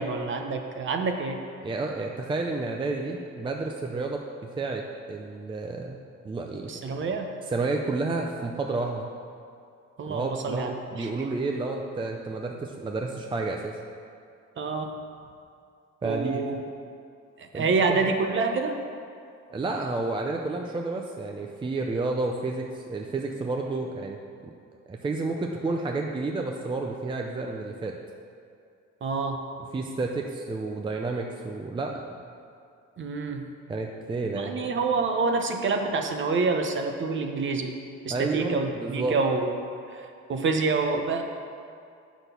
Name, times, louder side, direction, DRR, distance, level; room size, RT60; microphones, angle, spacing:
voice 1, 0.0-1.4 6.7-7.3 10.0-11.1 14.6-15.0 16.0-16.6 17.4-18.8 29.0-29.4 33.0-33.5 34.3-37.7 38.0-39.5 39.9-41.2, right 4 dB, 40° right, 4 dB, 0.9 m, -27 dB
voice 2, 1.6-4.2 4.6-4.8 5.1-6.0 6.2-6.7 7.5-9.1 10.1-13.8 16.0-16.4 17.5-17.7 17.9-18.0 19.5-24.2 24.9-27.9 29.7-32.0 33.7-34.7 38.1-39.2, right 3 dB, 15° right, 2 dB, 0.5 m, -30 dB
7.9 x 6.2 x 6.8 m, 2.4 s
cardioid pair, 150°, 30 cm